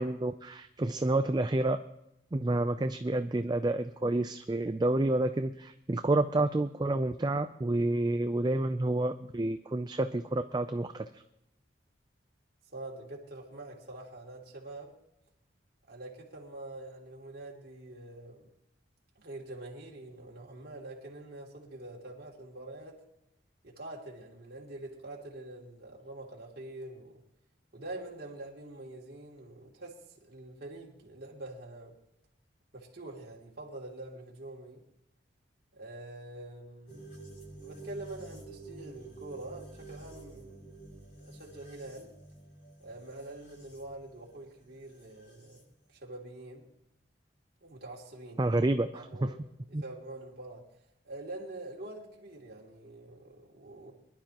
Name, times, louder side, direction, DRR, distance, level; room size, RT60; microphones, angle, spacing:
voice 1, 0.0-1.8 2.3-11.2 48.4-49.3 49.7-49.8, right 2 dB, 20° right, 9 dB, 0.4 m, -29 dB
voice 2, 12.7-14.9 15.9-18.5 19.1-23.0 23.6-27.2 27.7-32.0 32.7-34.8 35.7-37.0 37.6-40.6 41.2-42.1 42.8-45.6 45.9-46.7 47.6-48.6 48.9-49.4 49.7-50.7 51.0-53.9, right 2 dB, 55° right, -3 dB, 2.8 m, -45 dB
sound 1, 36.9-45.6, right 2 dB, 45° left, 6.5 m, -50 dB
23.5 x 11.5 x 3.0 m, 0.82 s
head